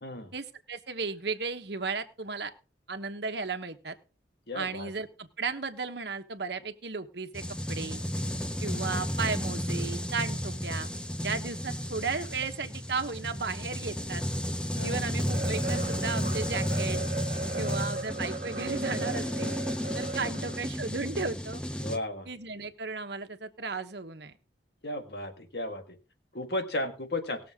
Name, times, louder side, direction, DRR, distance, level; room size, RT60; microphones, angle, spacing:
voice 1, 0.3-2.5 2.9-3.9 4.5-7.4 7.7-8.0 8.6-10.9 11.2-14.2 14.8-17.0 17.6-19.5 19.9-21.6 22.3-24.3, right 4 dB, 70° right, 7 dB, 1.2 m, -35 dB
voice 2, 4.5-4.9 14.8-15.0 17.5-17.8 20.2-20.3 21.8-22.3 24.8-26.0 26.3-27.4, left 1 dB, 65° left, 6 dB, 1.8 m, -35 dB
sound 1, 7.3-22.0, equal, 5° left, 0.6 m, -33 dB
sound 2, 15.3-20.7, right 2 dB, 50° right, 1.6 m, -37 dB
19.0 x 7.0 x 3.7 m, 0.33 s
head